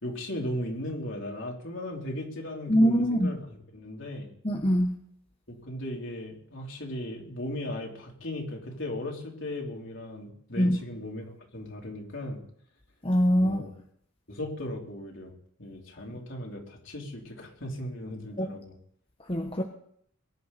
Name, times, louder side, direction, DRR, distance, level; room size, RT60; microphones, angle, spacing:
voice 1, 0.0-4.3 5.5-11.3 11.5-12.4 13.4-13.7 14.3-15.3 15.6-18.7, left 1 dB, 60° left, -1 dB, 3.7 m, -37 dB
voice 2, 2.7-3.3 4.4-5.0 10.6-10.8 13.0-13.6 18.4-18.5 19.3-19.6, equal, 25° left, 2 dB, 1.1 m, -23 dB
22.5 x 11.5 x 4.2 m, 0.66 s
head